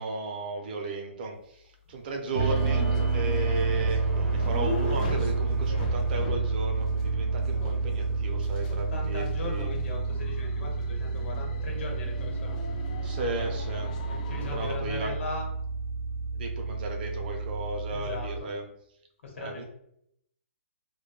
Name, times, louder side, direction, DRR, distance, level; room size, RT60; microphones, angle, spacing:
voice 1, 0.0-9.7 13.0-13.9 14.5-15.2 16.3-18.7 19.4-19.6, right 2 dB, 40° right, 3 dB, 0.5 m, -35 dB
sound 1, 2.3-14.8, left 4 dB, 35° left, 0.3 m, -40 dB
sound 2, 2.3-18.4, right 4 dB, 90° right, 0.6 m, -29 dB
voice 2, 8.7-12.6 14.3-15.5 17.9-18.5 19.2-19.6, left 3 dB, 65° left, 1 dB, 1.0 m, -39 dB
2.2 x 2.1 x 2.9 m, 0.75 s
hypercardioid pair, 160°, 7 cm